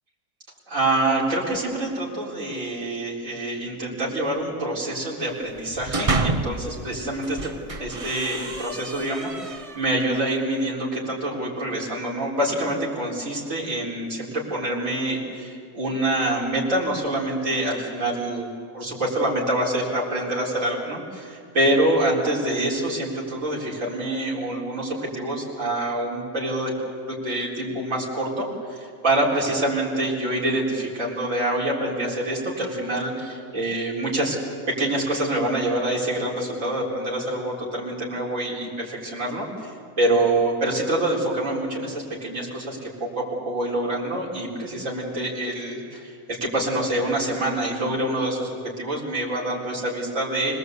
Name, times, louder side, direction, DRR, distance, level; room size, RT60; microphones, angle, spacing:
voice 1, 0.7-7.5 7.8-18.5 18.7-26.7 27.1-34.4 34.7-50.6, right 1 dB, 50° right, -4 dB, 4.5 m, -26 dB
sound 1, 5.6-6.7 7.2-10.0, right 3 dB, 30° right, 0.7 m, -29 dB
26.0 x 19.5 x 8.2 m, 2.3 s
omnidirectional pair, 1.7 m